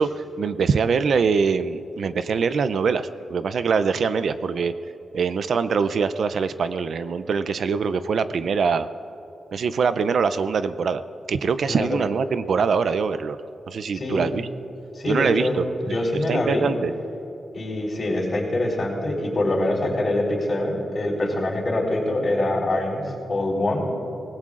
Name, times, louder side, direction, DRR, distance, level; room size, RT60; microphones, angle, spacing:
voice 1, 0.0-4.7 5.1-8.9 9.5-11.0 11.3-13.4 13.7-14.5 15.1-15.6 16.3-16.9, right 5 dB, 60° right, 12 dB, 0.5 m, -23 dB
voice 2, 11.7-12.0 13.9-14.2 14.9-16.7 17.5-23.0 23.3-23.8, left 1 dB, 35° left, -3 dB, 3.9 m, -24 dB
24.5 x 19.5 x 2.5 m, 2.8 s
wide cardioid pair, 150°, 0 cm